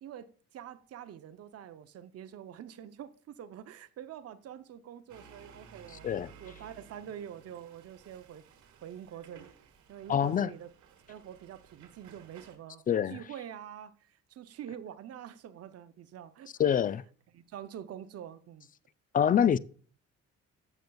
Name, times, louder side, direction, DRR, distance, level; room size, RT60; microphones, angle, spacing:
voice 1, 0.0-6.1 6.4-8.5 8.8-10.7 11.1-16.7 17.3-18.7, right 10 dB, 55° right, 0.6 m, -46 dB
sound 1, 5.1-12.6, right 7 dB, 75° right, 1.7 m, -57 dB
voice 2, 10.1-10.5 12.9-13.2 16.6-17.0 19.1-19.6, left 9 dB, 30° left, 0.3 m, -25 dB
14.0 x 6.9 x 2.3 m
cardioid pair, 90°, 30 cm